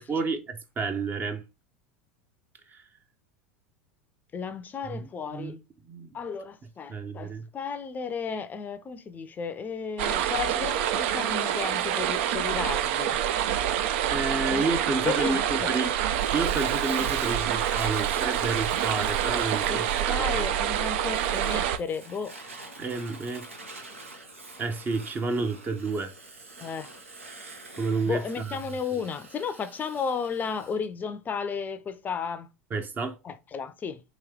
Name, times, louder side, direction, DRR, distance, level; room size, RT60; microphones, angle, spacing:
voice 1, 0.0-1.4 2.7-2.8 4.9-5.6 5.9-6.1 6.9-7.5 14.1-15.9 16.3-20.2 22.8-23.5 24.6-26.1 27.7-28.6 32.7-33.2, right 3 dB, 25° right, 0.7 m, -30 dB
voice 2, 4.3-5.6 6.1-13.2 14.5-14.7 15.0-15.3 15.6-15.7 19.6-22.4 26.6-26.9 28.0-32.5 33.2-34.0, left 6 dB, 25° left, 0.5 m, -33 dB
sound 1, 10.0-21.8, right 10 dB, 60° right, 0.4 m, -27 dB
Fire, 16.1-30.8, right 2 dB, 85° right, 0.9 m, -45 dB
3.1 x 2.9 x 3.5 m
hypercardioid pair, 85°, 7 cm